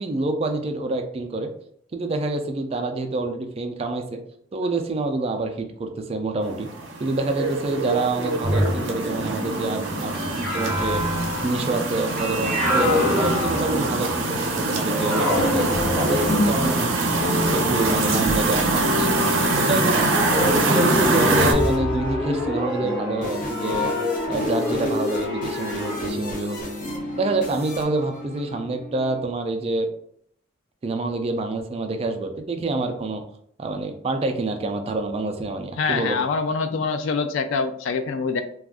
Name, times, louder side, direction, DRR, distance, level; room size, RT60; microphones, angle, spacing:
voice 1, 0.0-1.5 1.9-4.2 4.5-6.7 7.0-11.0 11.4-20.0 20.6-23.9 24.3-26.6 27.1-29.9 30.8-33.2 33.6-36.2, right 2 dB, 30° right, 5 dB, 0.3 m, -27 dB
sound 1, 6.5-21.5, right 2 dB, 80° right, 0.6 m, -24 dB
sound 2, 8.4-14.3 14.8-18.8 19.6-26.1, left 1 dB, 5° left, 0.8 m, -26 dB
sound 3, 17.1-29.2, left 3 dB, 45° left, 0.7 m, -32 dB
voice 2, 35.8-38.4, left 4 dB, 70° left, 9 dB, 0.3 m, -25 dB
2.4 x 2.3 x 3.5 m, 0.66 s
head